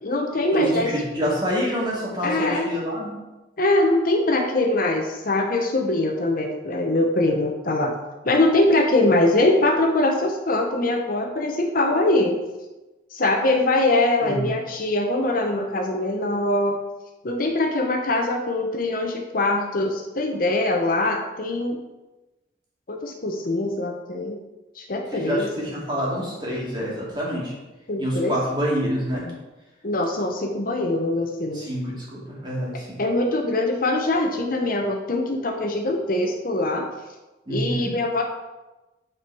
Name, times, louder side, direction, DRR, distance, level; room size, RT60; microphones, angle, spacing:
voice 1, 0.0-0.9 2.2-2.6 3.6-7.9 8.2-12.4 13.1-16.8 17.2-21.8 22.9-24.4 24.8-25.5 27.9-28.4 29.8-31.6 33.0-36.8 37.5-38.2, left 2 dB, 50° left, 2 dB, 0.8 m, -22 dB
voice 2, 0.5-3.2 14.2-14.5 25.1-27.5 28.0-29.3 31.5-33.0 37.5-37.9, equal, 25° right, -5 dB, 2.3 m, -27 dB
8.7 x 4.6 x 4.7 m, 1.1 s
head